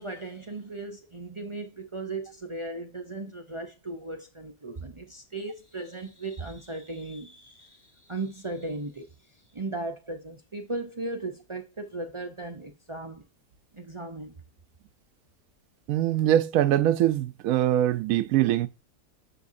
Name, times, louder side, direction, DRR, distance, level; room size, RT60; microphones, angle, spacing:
voice 1, 0.0-9.1 9.5-13.2 13.7-14.3, right 2 dB, 50° right, 0.3 m, -37 dB
voice 2, 15.9-18.7, right 12 dB, 70° right, 0.9 m, -23 dB
6.8 x 6.8 x 2.6 m
omnidirectional pair, 1.8 m